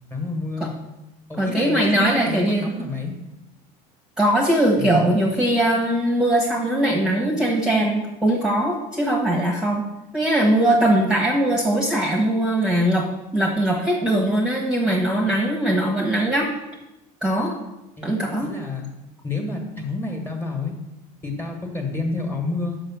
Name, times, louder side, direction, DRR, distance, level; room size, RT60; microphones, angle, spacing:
voice 1, 0.1-0.7 1.3-3.1 4.8-5.1 18.0-18.1 18.4-18.9 19.2-20.7 21.2-22.8, left 3 dB, 15° left, 2 dB, 1.5 m, -29 dB
voice 2, 1.4-2.7 4.2-9.8 10.1-13.1 13.3-16.5 17.2-17.5 18.0-18.5, right 1 dB, 5° right, -2 dB, 1.1 m, -20 dB
6.3 x 4.9 x 6.1 m, 0.96 s
cardioid pair, 130°, 17 cm